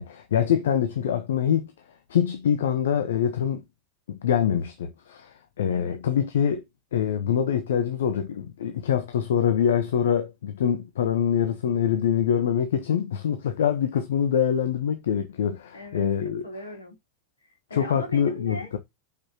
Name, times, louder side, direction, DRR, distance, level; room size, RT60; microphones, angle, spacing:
voice 1, 0.0-1.7 2.1-3.6 4.1-6.6 6.9-16.4 17.7-18.8, left 8 dB, 60° left, 1.0 m, -24 dB
voice 2, 5.7-6.0 15.7-16.1 16.4-17.0 17.7-18.8, left 1 dB, 75° left, 3.4 m, -38 dB
7.9 x 5.7 x 2.9 m
figure-of-eight pair, 90°, 0 cm